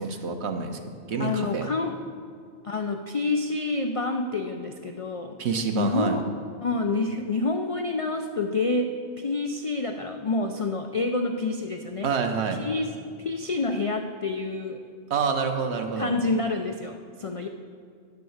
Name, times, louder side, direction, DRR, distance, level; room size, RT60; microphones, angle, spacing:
voice 1, 0.0-1.7 5.4-6.2 12.0-12.6 15.1-16.1, right 5 dB, 65° right, 6 dB, 1.1 m, -27 dB
voice 2, 1.2-2.0 2.6-5.4 5.7-6.3 6.6-12.1 12.6-12.9 13.2-14.8 16.0-17.5, left 3 dB, 55° left, 5 dB, 0.3 m, -28 dB
9.7 x 6.7 x 7.1 m, 2.2 s
omnidirectional pair, 1.2 m